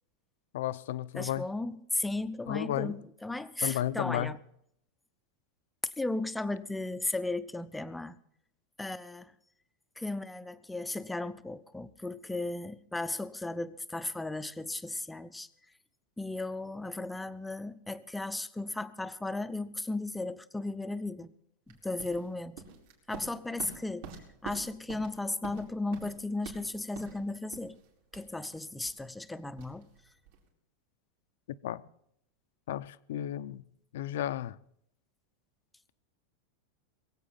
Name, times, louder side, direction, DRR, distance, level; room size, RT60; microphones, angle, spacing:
voice 1, 0.5-1.5 2.5-3.0 3.6-4.3 31.6-31.8 32.7-33.6 33.9-34.6, left 12 dB, 75° left, 0.6 m, -33 dB
voice 2, 1.1-4.4 6.0-8.2 8.8-9.3 10.0-15.5 16.2-21.3 21.7-22.6 23.1-24.1 24.4-27.8 28.1-29.9, left 2 dB, 5° left, 0.5 m, -35 dB
sound 1, 21.7-30.5, right 6 dB, 70° right, 4.1 m, -48 dB
22.0 x 8.1 x 5.6 m
supercardioid pair, 155°, 0 cm